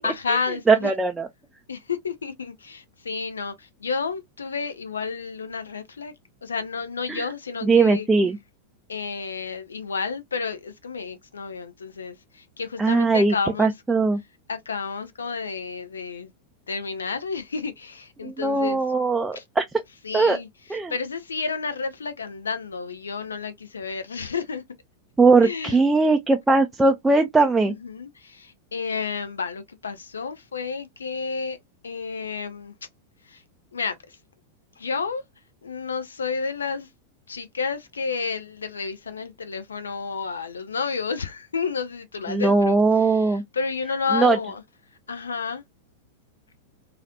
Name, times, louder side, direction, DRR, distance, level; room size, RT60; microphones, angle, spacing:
voice 1, 0.0-0.9 1.7-6.1 6.4-8.1 8.9-13.7 14.5-16.3 16.7-18.8 19.3-19.4 20.0-24.6 25.4-25.8 27.6-31.6 31.8-32.7 33.2-33.4 33.7-34.2 34.8-35.2 35.6-36.9 37.3-44.6 45.1-45.6, left 5 dB, 70° left, 0.4 m, -31 dB
voice 2, 0.7-1.3 7.1-7.3 7.6-8.4 12.8-14.2 18.2-19.6 20.1-20.4 20.7-20.9 25.2-27.7 42.3-43.4 44.1-44.4, right 3 dB, 10° right, 0.4 m, -20 dB
3.1 x 2.4 x 2.7 m
figure-of-eight pair, 90°, 0 cm